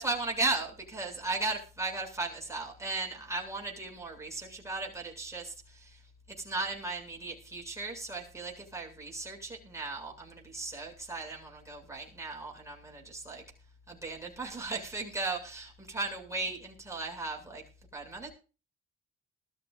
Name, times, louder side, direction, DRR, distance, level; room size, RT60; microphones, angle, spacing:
voice 1, 0.0-6.0 6.4-13.4 13.9-17.6 17.9-18.3, right 3 dB, 10° right, 0 dB, 7.4 m, -36 dB
21.0 x 13.5 x 2.6 m, 0.34 s
cardioid pair, 90°, 30 cm